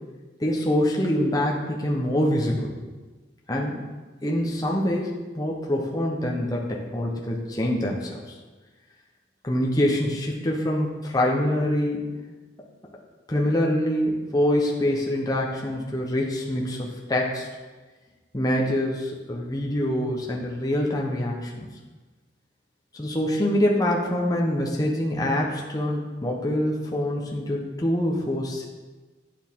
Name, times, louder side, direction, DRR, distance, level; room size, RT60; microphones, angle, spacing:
voice 1, 0.4-2.7 3.5-3.8 4.2-8.2 9.4-12.1 13.3-17.5 18.3-21.7 22.9-28.7, left 1 dB, 20° left, -2 dB, 0.9 m, -25 dB
9.3 x 7.1 x 3.6 m, 1.3 s
head